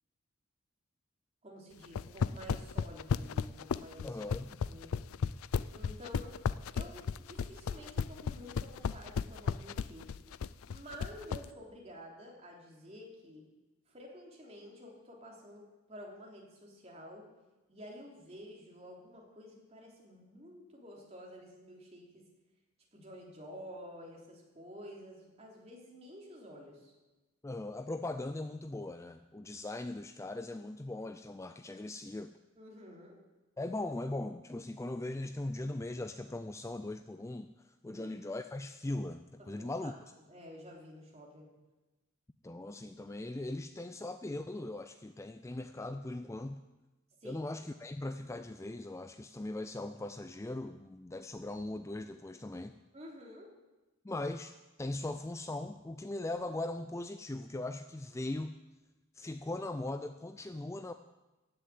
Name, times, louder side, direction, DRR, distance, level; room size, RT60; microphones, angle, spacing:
voice 1, 1.4-4.2 4.6-4.9 5.7-6.4 6.7-10.1 10.7-13.4 13.9-17.3 17.7-22.1 22.9-26.9 32.6-33.2 37.9-38.1 39.4-39.9 40.3-41.5 47.2-47.5 52.9-53.5, equal, 30° right, -1 dB, 3.2 m, -50 dB
sound 1, 1.8-11.4, left 6 dB, 80° left, 0.4 m, -34 dB
voice 2, 4.0-4.5 27.4-32.3 33.6-37.5 37.8-39.9 42.4-46.6 47.2-52.8 54.0-58.5 59.1-60.9, left 2 dB, 15° left, 9 dB, 0.3 m, -39 dB
15.0 x 6.9 x 9.2 m, 1.1 s
head